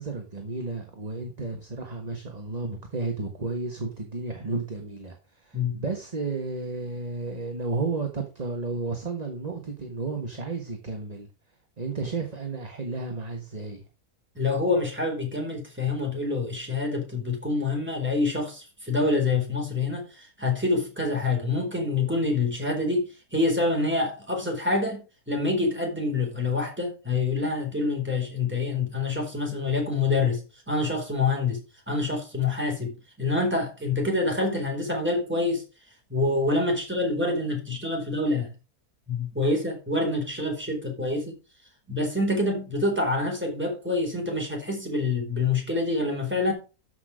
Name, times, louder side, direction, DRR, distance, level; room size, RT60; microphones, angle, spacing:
voice 1, 0.0-11.3 11.8-13.8, right 3 dB, 25° right, 1.4 m, -32 dB
voice 2, 14.3-30.4 30.7-31.6 31.9-35.6 36.1-38.5 39.1-41.3 41.9-46.5, left 3 dB, 5° right, 4.4 m, -26 dB
13.0 x 6.0 x 5.0 m
omnidirectional pair, 1.6 m